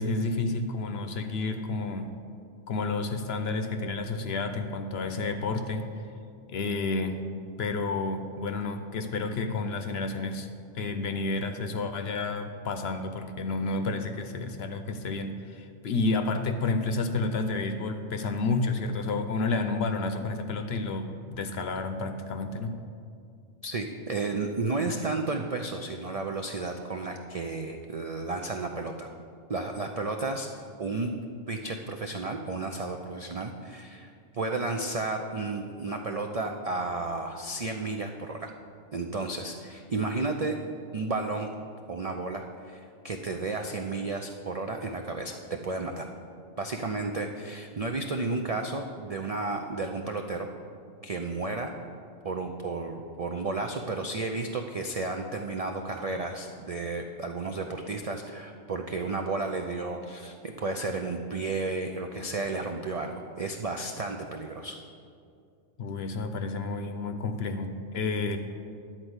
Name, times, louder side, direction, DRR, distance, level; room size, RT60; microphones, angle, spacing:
voice 1, 0.0-2.2 2.7-5.8 6.5-7.2 7.6-10.5 10.7-22.8 65.8-68.4, left 3 dB, 60° left, 7 dB, 0.8 m, -30 dB
voice 2, 23.6-29.1 29.5-30.5 30.8-31.1 31.5-38.5 38.9-40.6 40.9-41.5 41.9-46.0 46.6-50.5 51.0-51.7 52.2-64.8, right 3 dB, 60° right, 3 dB, 0.3 m, -32 dB
11.0 x 4.4 x 8.0 m, 2.4 s
omnidirectional pair, 1.3 m